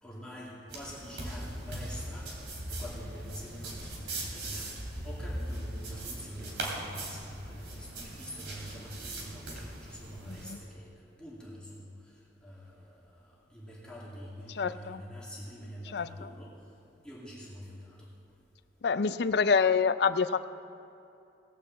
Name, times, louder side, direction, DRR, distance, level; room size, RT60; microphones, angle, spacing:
voice 1, 0.0-16.7 17.0-18.1, equal, 5° left, -7 dB, 2.3 m, -46 dB
sound 1, 0.7-10.5, right 1 dB, 70° right, 2.9 m, -40 dB
voice 2, 10.3-10.6 14.6-15.0 15.9-16.1 18.8-20.4, left 5 dB, 60° left, 14 dB, 0.4 m, -26 dB
18.5 x 6.8 x 7.6 m, 2.7 s
head